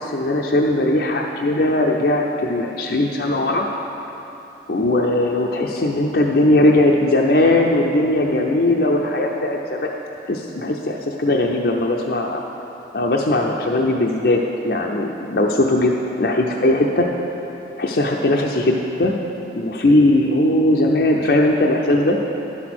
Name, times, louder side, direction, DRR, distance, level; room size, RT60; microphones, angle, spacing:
voice 1, 0.0-3.7 4.7-9.9 10.3-12.4 12.9-17.1 17.8-19.2 19.5-22.2, left 1 dB, 60° left, 0 dB, 0.6 m, -19 dB
11.0 x 6.1 x 6.0 m, 3.0 s
head